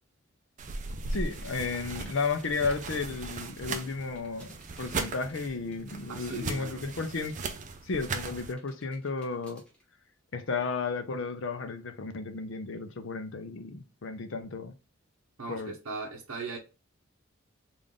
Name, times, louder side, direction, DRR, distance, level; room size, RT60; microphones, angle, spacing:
sound 1, 0.6-8.5, right 3 dB, 35° right, 0.4 m, -38 dB
voice 1, 1.1-7.4 7.8-9.6 10.3-14.8 15.5-15.7, left 4 dB, 60° left, 0.5 m, -33 dB
sound 2, 1.3-6.3 6.6-8.2 8.6-9.8, equal, 5° left, 0.9 m, -58 dB
voice 2, 6.1-6.8 15.4-16.6, right 3 dB, 70° right, 0.7 m, -38 dB
3.6 x 2.5 x 3.6 m
head